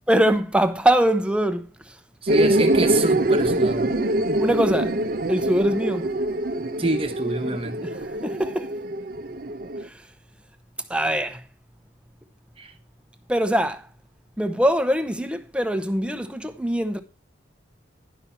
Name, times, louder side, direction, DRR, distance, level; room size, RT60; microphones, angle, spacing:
voice 1, 0.1-1.7 4.4-4.9 5.3-6.1 7.8-8.7 9.8-10.0 10.9-11.4 13.3-13.9 14.4-17.0, right 1 dB, 5° right, 0.8 m, -22 dB
voice 2, 2.2-3.9 6.8-7.9 12.6-12.7, right 2 dB, 30° right, 1.2 m, -27 dB
sound 1, 2.3-9.8, right 1 dB, 50° right, 0.7 m, -24 dB
11.5 x 5.8 x 5.6 m
head